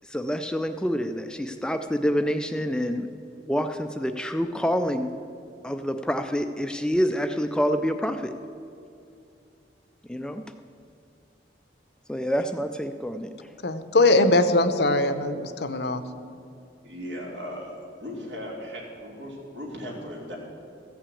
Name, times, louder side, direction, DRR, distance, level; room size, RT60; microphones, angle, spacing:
voice 1, 0.0-3.1 3.5-5.1 5.6-8.3 10.1-10.4 12.1-13.5, equal, 5° left, 7 dB, 0.3 m, -27 dB
voice 2, 13.6-16.0, left 2 dB, 60° left, 10 dB, 0.7 m, -21 dB
voice 3, 16.8-17.7 18.0-20.4, equal, 80° right, -2 dB, 3.0 m, -37 dB
14.5 x 5.9 x 8.4 m, 2.6 s
head